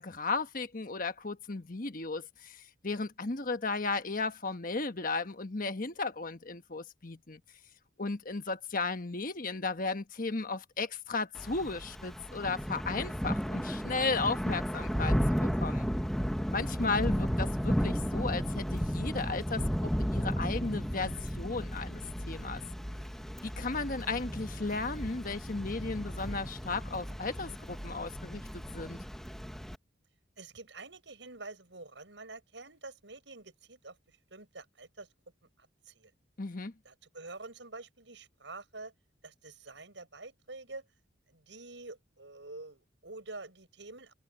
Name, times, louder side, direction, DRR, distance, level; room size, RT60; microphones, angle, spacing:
voice 1, 0.0-7.4 8.0-15.9 16.5-22.6 23.4-29.0 36.4-36.7, left 3 dB, 45° left, 1.3 m, -35 dB
Thunder / Rain, 11.4-29.8, equal, ahead, 1.2 m, -34 dB
voice 2, 30.4-35.1 35.6-36.1 36.8-38.9 39.2-40.9 41.3-44.1, right 3 dB, 75° right, 6.2 m, -47 dB
head